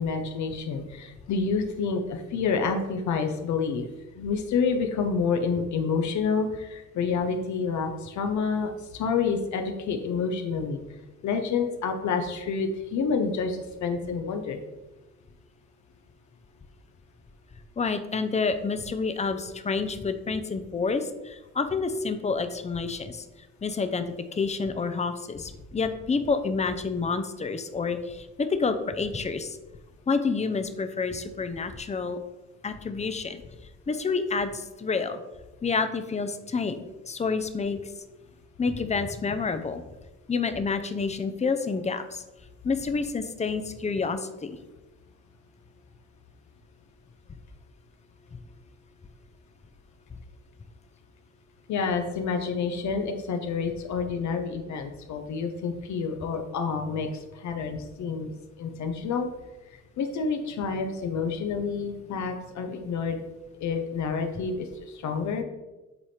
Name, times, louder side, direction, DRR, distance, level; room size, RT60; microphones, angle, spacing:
voice 1, 0.0-3.9 4.2-10.8 11.2-14.6 51.7-57.1 57.3-58.3 58.6-59.3 60.0-63.2 63.6-65.4, left 5 dB, 70° left, 5 dB, 0.8 m, -28 dB
voice 2, 17.8-23.2 23.6-24.0 24.3-29.6 30.1-32.2 32.6-33.4 33.9-35.2 35.6-36.8 37.1-37.8 38.6-39.8 40.3-42.2 42.6-44.6 48.3-48.4, left 4 dB, 20° left, 9 dB, 0.6 m, -28 dB
8.0 x 3.4 x 4.3 m, 1.1 s
cardioid pair, 90°, 30 cm